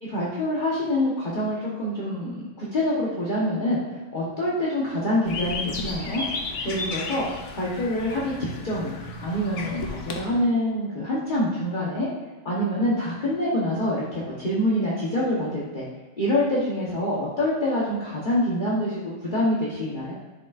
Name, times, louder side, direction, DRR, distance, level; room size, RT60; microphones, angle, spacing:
voice 1, 0.0-3.8 4.1-6.2 6.6-7.3 7.5-9.0 9.2-12.1 12.4-15.9 16.2-20.1, left 1 dB, 40° left, -8 dB, 1.3 m, -26 dB
sound 1, 5.3-10.3, left 3 dB, 70° left, 1.1 m, -33 dB
11.0 x 5.1 x 2.5 m, 1.2 s
omnidirectional pair, 1.3 m